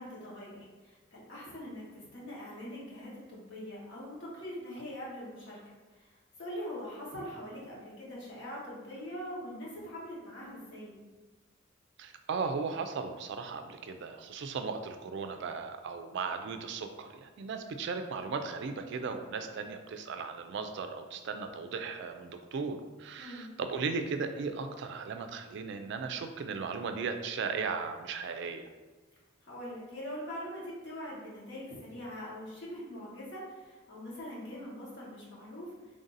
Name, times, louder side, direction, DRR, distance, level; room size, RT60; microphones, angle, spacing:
voice 1, 0.0-5.6 5.9-6.1 6.4-11.0 23.2-23.5 29.4-35.7, equal, 65° left, -6 dB, 1.3 m, -43 dB
voice 2, 12.0-28.7, right 5 dB, 60° right, 7 dB, 0.3 m, -36 dB
3.5 x 2.6 x 3.9 m, 1.3 s
head